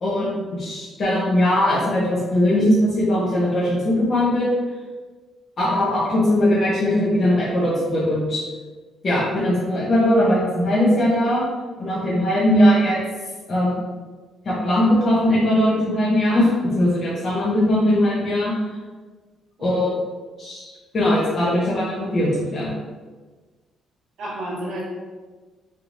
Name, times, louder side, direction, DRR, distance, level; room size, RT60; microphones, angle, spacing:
voice 1, 0.0-4.6 5.6-8.4 9.0-11.4 11.8-13.0 13.5-13.8 14.4-16.5 16.7-18.5 19.6-19.9 20.4-20.7 20.9-22.7, left 1 dB, 40° left, -8 dB, 0.8 m, -20 dB
voice 2, 19.6-19.9 24.2-24.8, right 1 dB, 70° right, -7 dB, 1.1 m, -31 dB
3.3 x 3.0 x 2.6 m, 1.3 s
cardioid pair, 130°, 0 cm